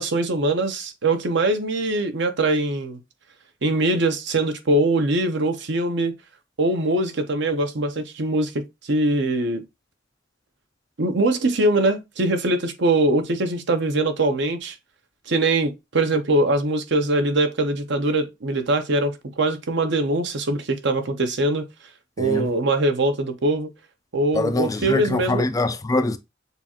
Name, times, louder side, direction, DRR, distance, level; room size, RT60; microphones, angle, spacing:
voice 1, 0.0-3.0 3.6-6.1 6.6-9.6 11.0-14.7 15.3-21.7 22.2-23.7 24.1-25.4, right 2 dB, 65° right, 0.8 m, -22 dB
voice 2, 22.2-22.5 24.3-26.2, left 2 dB, 20° left, 0.3 m, -23 dB
6.7 x 2.4 x 2.8 m
head